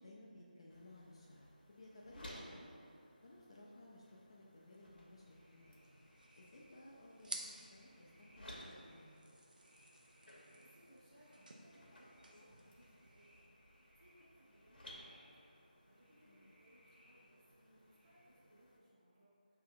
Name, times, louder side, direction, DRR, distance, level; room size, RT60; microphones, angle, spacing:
voice 1, 0.0-2.6 3.2-5.8 6.4-9.1 16.3-16.5, left 1 dB, 35° left, -4 dB, 0.4 m, -59 dB
sound 1, 0.7-18.8, equal, 80° left, 0.8 m, -60 dB
sound 2, 4.9-18.3, equal, 80° right, 1.2 m, -71 dB
sound 3, 5.8-13.5, right 2 dB, 60° right, 0.4 m, -55 dB
voice 2, 10.2-13.6 13.9-15.2 15.5-19.6, equal, 25° right, -11 dB, 1.2 m, -68 dB
5.4 x 2.8 x 2.5 m, 2.5 s
figure-of-eight pair, 165°, 5 cm